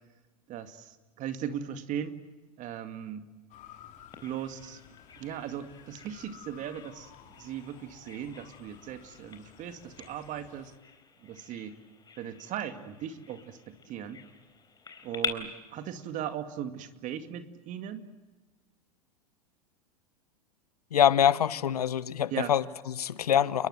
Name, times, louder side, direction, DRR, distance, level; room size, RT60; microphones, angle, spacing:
voice 1, 0.5-2.2 2.6-3.3 4.2-4.8 5.2-7.1 7.4-10.7 11.2-11.8 12.2-14.2 15.0-18.1 22.3-22.5, right 9 dB, 40° right, 2.2 m, -38 dB
Motor vehicle (road) / Siren, 3.5-10.8, left 10 dB, 40° left, 3.1 m, -54 dB
Bird vocalization bird call bird song, 4.1-15.3, left 6 dB, 20° left, 3.9 m, -45 dB
voice 2, 20.9-23.7, left 9 dB, 80° left, 1.1 m, -25 dB
30.0 x 22.0 x 7.9 m
hypercardioid pair, 95°, 19 cm